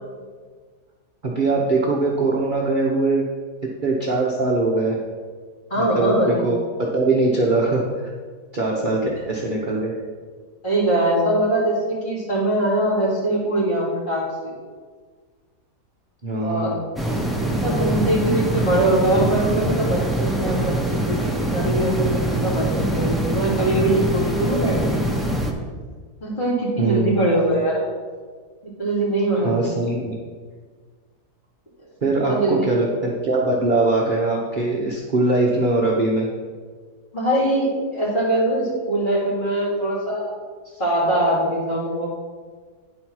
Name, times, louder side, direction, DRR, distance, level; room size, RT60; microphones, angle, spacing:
voice 1, 1.2-3.2 3.8-5.0 5.8-6.6 6.9-7.9 8.5-9.9 16.2-16.7 26.8-27.3 29.3-30.2 32.0-36.3, right 2 dB, 35° right, -3 dB, 0.9 m, -21 dB
voice 2, 5.7-6.4 10.6-14.5 16.4-16.8 17.4-25.0 26.2-27.9 28.8-29.5 32.2-32.6 37.1-40.3 40.8-42.1, right 1 dB, 30° left, -7 dB, 3.0 m, -22 dB
sound 1, 17.0-25.5, right 1 dB, ahead, 0.5 m, -23 dB
9.9 x 4.4 x 6.2 m, 1.5 s
omnidirectional pair, 1.7 m